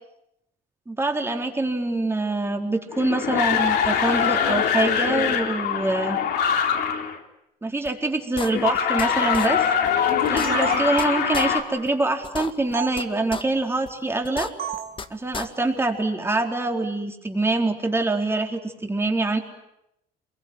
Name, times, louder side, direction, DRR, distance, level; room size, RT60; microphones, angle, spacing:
voice 1, 0.9-6.2 7.6-9.6 10.3-14.5 15.1-19.4, right 2 dB, 15° right, 3 dB, 4.1 m, -25 dB
sound 1, 2.9-7.2 8.5-11.6, left 8 dB, 75° left, 3.6 m, -23 dB
sound 2, 7.9-8.0 8.4-9.1 9.3-9.5 9.9-10.0 10.2-11.1 11.3-11.5 11.9-12.0 12.2-13.0 13.3-13.4 13.9-14.0 14.2-15.1 15.3-15.5, left 5 dB, 30° left, 1.7 m, -33 dB
sound 3, 10.1-11.3 12.7-12.9 14.6-15.0, right 9 dB, 65° right, 2.9 m, -32 dB
27.5 x 22.5 x 9.6 m, 0.83 s
cardioid pair, 110°, 17 cm